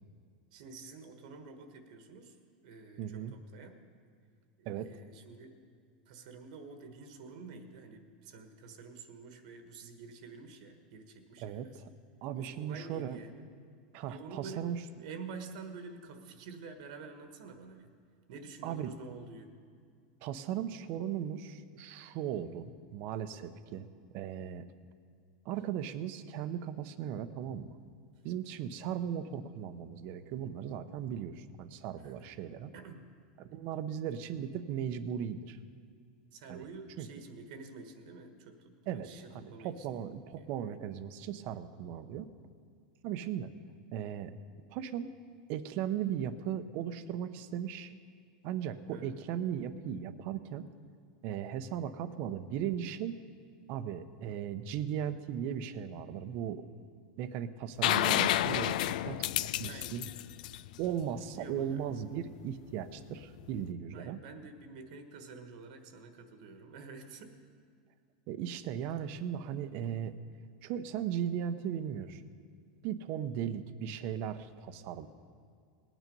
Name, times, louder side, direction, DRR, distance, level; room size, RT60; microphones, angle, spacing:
voice 1, 0.5-2.4 2.6-3.8 4.6-5.6 6.1-11.8 12.3-13.5 14.1-14.7 15.0-17.9 18.3-19.5 32.0-32.3 32.7-33.1 36.3-39.9 40.4-40.5 48.9-49.2 59.7-60.0 61.3-61.8 63.9-67.4, right 4 dB, 65° right, 7 dB, 1.4 m, -49 dB
voice 2, 3.0-3.3 4.7-4.9 11.4-11.9 12.2-13.2 13.9-14.8 18.6-18.9 20.2-24.7 25.4-27.7 28.2-32.7 33.4-35.6 36.5-36.7 37.0-37.1 38.9-39.1 39.3-42.3 43.0-43.5 43.9-44.3 44.7-45.1 45.5-47.9 48.4-50.6 51.2-53.2 53.7-56.6 57.2-59.3 59.6-60.1 60.8-64.2 68.3-70.1 70.6-72.2 72.8-75.1, right 9 dB, 45° right, 12 dB, 0.7 m, -37 dB
sound 1, 57.8-61.5 63.4-63.5, left 14 dB, 75° left, 0.3 m, -30 dB
19.0 x 9.1 x 5.4 m, 2.2 s
supercardioid pair, 150°, 4 cm